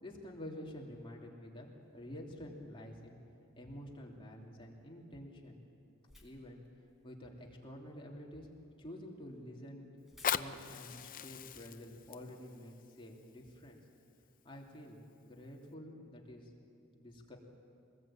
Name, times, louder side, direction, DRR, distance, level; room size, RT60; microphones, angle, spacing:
voice 1, 0.0-1.7 1.9-3.2 3.6-5.6 6.2-6.6 7.0-8.5 8.8-9.9 10.3-13.8 14.4-16.5 17.0-17.4, left 1 dB, 25° left, -1 dB, 3.0 m, -49 dB
sound 1, 1.8-14.4, left 2 dB, ahead, 4.3 m, -70 dB
Fire, 10.0-15.0 15.6-15.7, left 9 dB, 40° left, 0.6 m, -41 dB
24.5 x 20.0 x 8.9 m, 2.7 s
head